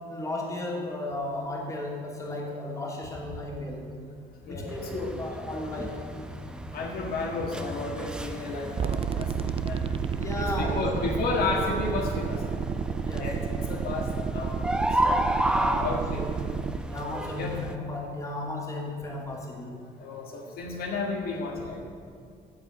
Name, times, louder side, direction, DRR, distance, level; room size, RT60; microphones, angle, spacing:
voice 1, 0.0-3.9 4.5-6.1 10.1-10.9 13.0-13.4 15.4-16.4 16.9-19.7, left 1 dB, 20° left, -2 dB, 2.7 m, -35 dB
voice 2, 4.4-5.1 6.7-9.8 10.4-12.4 13.2-14.6 15.0-15.1 15.8-16.2 17.4-17.6 20.0-21.9, left 3 dB, 65° left, 0 dB, 1.6 m, -32 dB
sound 1, 4.7-17.8, right 1 dB, 5° right, 0.7 m, -33 dB
sound 2, 8.8-16.8, right 7 dB, 35° right, 0.4 m, -31 dB
14.0 x 4.9 x 9.0 m, 2.4 s
cardioid pair, 110°, 17 cm